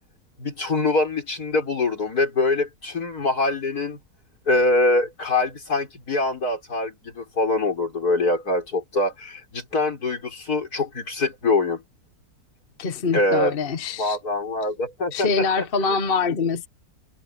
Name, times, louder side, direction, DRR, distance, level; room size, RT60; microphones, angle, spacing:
voice 1, 0.4-4.0 4.5-11.8 13.1-13.5 14.0-15.3 15.9-16.0, left 2 dB, 70° left, 5.3 m, -24 dB
voice 2, 12.8-14.2 15.1-16.7, left 4 dB, 40° left, 1.2 m, -24 dB
omnidirectional pair, 1.7 m